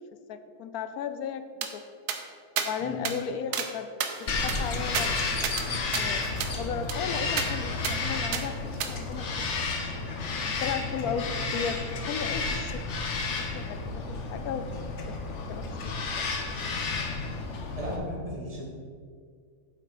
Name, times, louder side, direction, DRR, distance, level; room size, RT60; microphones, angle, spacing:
voice 1, 0.3-1.9 2.6-3.9 4.2-5.2 6.0-6.2 6.6-9.3 9.6-9.7 10.4-12.9 13.4-13.8 14.1-14.7 15.1-15.2 15.5-15.9 16.2-16.3, left 7 dB, 75° left, 10 dB, 1.0 m, -35 dB
sound 1, 1.6-1.7 2.1-2.2 2.6-2.7 3.1-3.2 3.5-3.7 4.0-5.7 5.9-6.0 6.4-6.5 6.9-7.0 7.4-7.5 7.8-8.0 8.3-8.4 8.8-8.9, right 7 dB, 85° right, 1.3 m, -32 dB
Bird vocalization bird call bird song, 4.3-18.0, left 3 dB, 50° left, 1.2 m, -32 dB
voice 2, 17.8-18.7, equal, 25° right, -2 dB, 1.7 m, -36 dB
7.8 x 7.8 x 4.9 m, 2.1 s
omnidirectional pair, 1.7 m